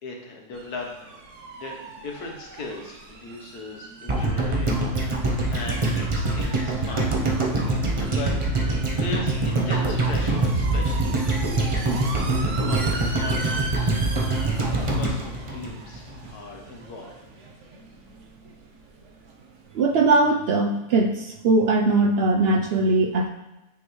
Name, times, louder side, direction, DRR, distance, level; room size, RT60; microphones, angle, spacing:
voice 1, 0.0-7.2 7.6-12.4 12.6-17.1, left 3 dB, 80° left, 1 dB, 1.6 m, -39 dB
sound 1, 0.5-20.0, right 3 dB, 55° right, 1.1 m, -40 dB
sound 2, 4.1-16.3 16.6-16.7, right 2 dB, 30° right, 0.5 m, -24 dB
voice 2, 19.7-23.3, right 3 dB, 90° right, 2 dB, 0.5 m, -20 dB
9.3 x 4.0 x 3.1 m, 0.98 s
omnidirectional pair, 1.6 m